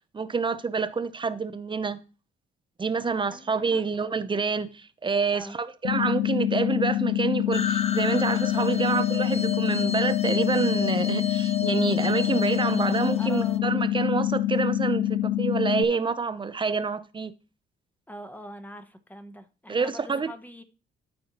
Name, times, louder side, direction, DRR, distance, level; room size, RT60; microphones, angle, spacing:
voice 1, 0.1-2.0 2.8-17.3 19.7-20.3, right 5 dB, 25° right, 0.6 m, -27 dB
voice 2, 3.3-3.8 5.3-5.6 13.2-13.6 18.1-20.6, left 1 dB, 10° left, 0.9 m, -43 dB
sound 1, 5.8-15.8, left 13 dB, 80° left, 0.5 m, -26 dB
sound 2, 7.5-13.6, left 6 dB, 30° left, 0.6 m, -33 dB
12.5 x 4.3 x 2.9 m
cardioid pair, 90°, 20 cm